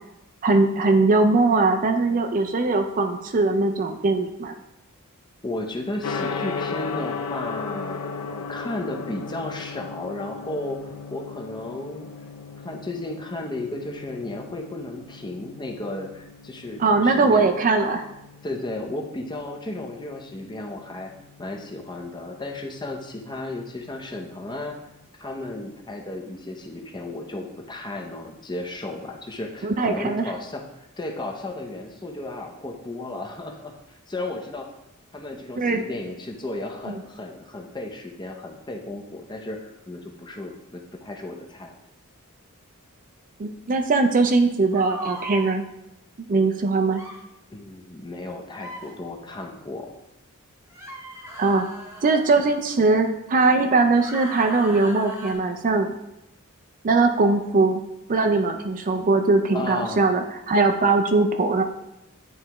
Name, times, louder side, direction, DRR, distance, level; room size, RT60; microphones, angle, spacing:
voice 1, 0.4-4.5 16.8-18.1 29.6-30.3 35.6-35.8 36.9-37.0 43.4-45.6 46.3-47.0 51.4-51.6 52.0-56.0 56.8-57.8 58.1-61.6, right 3 dB, 35° right, 6 dB, 0.4 m, -20 dB
voice 2, 5.4-12.1 12.6-17.5 18.4-21.1 21.4-24.7 25.2-30.7 31.0-34.7 35.1-41.7 47.5-49.9 59.5-60.1 60.8-61.2, left 2 dB, 20° left, 2 dB, 0.7 m, -34 dB
Gong, 6.0-25.0, left 5 dB, 85° left, 0.5 m, -37 dB
sound 1, 44.7-45.5 46.9-47.2 48.5-48.9 50.7-52.6 53.9-55.3, equal, 10° right, 1.1 m, -38 dB
9.4 x 3.5 x 3.0 m, 0.87 s
head